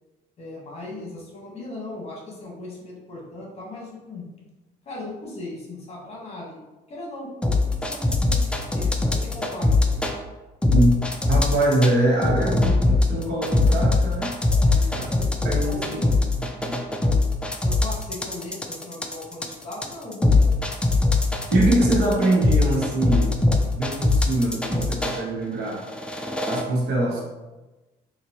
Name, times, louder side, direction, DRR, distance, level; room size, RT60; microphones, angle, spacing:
voice 1, 0.4-4.3 4.8-6.6 6.9-7.3 7.6-10.0 14.6-15.1 15.6-16.3 17.6-20.6 27.1-27.2, left 2 dB, 40° left, -3 dB, 1.3 m, -38 dB
sound 1, 7.4-10.1 10.6-11.9 12.2-25.2 25.8-26.6, left 2 dB, 5° left, 0.4 m, -21 dB
voice 2, 11.3-14.3 15.4-16.0 16.4-16.8 21.5-23.3 23.7-25.8 26.5-27.2, right 1 dB, 75° right, -3 dB, 1.2 m, -23 dB
3.9 x 2.6 x 2.9 m, 1.1 s
cardioid pair, 110°, 17 cm